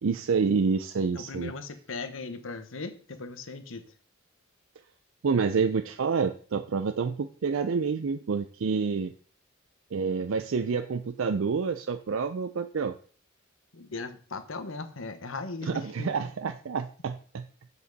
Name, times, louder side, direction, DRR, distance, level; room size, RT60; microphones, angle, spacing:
voice 1, 0.0-1.5 5.2-9.1 9.9-12.9 15.6-17.5, right 5 dB, 75° right, 10 dB, 0.4 m, -28 dB
voice 2, 1.1-3.8 13.7-16.3, left 3 dB, 75° left, 9 dB, 1.1 m, -38 dB
7.4 x 7.0 x 4.0 m, 0.43 s
head